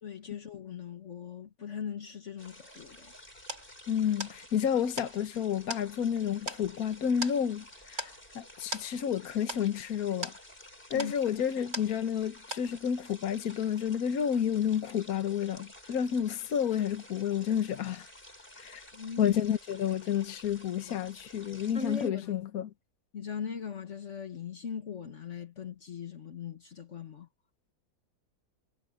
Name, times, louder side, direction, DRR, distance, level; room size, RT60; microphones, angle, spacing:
voice 1, 0.0-3.1 10.9-11.1 18.9-19.4 21.7-22.3 23.1-27.3, left 6 dB, 50° left, 1.5 m, -40 dB
sound 1, 2.4-22.1, left 1 dB, 35° left, 8.1 m, -52 dB
sound 2, 2.8-12.3 12.5-13.1, right 1 dB, 70° right, 7.8 m, -42 dB
voice 2, 3.9-10.3 10.9-18.1 18.6-18.8 19.2-22.7, left 8 dB, 70° left, 1.5 m, -30 dB
omnidirectional pair, 1.6 m